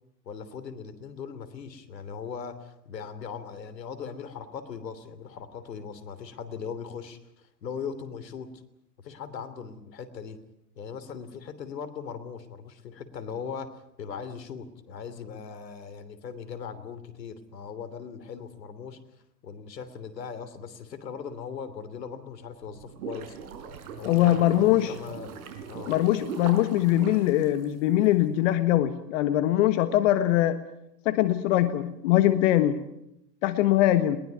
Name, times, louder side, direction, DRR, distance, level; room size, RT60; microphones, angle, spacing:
voice 1, 0.2-8.5 9.0-10.4 10.8-19.0 19.4-23.4 24.0-25.9, left 6 dB, 80° left, 12 dB, 3.3 m, -39 dB
sound 1, 22.6-28.0, right 5 dB, 60° right, 5.2 m, -40 dB
voice 2, 24.0-24.9 25.9-30.6 31.0-32.8 33.4-34.2, left 14 dB, 50° left, 10 dB, 1.6 m, -22 dB
21.5 x 20.5 x 9.4 m, 0.82 s
hypercardioid pair, 120°, 50 cm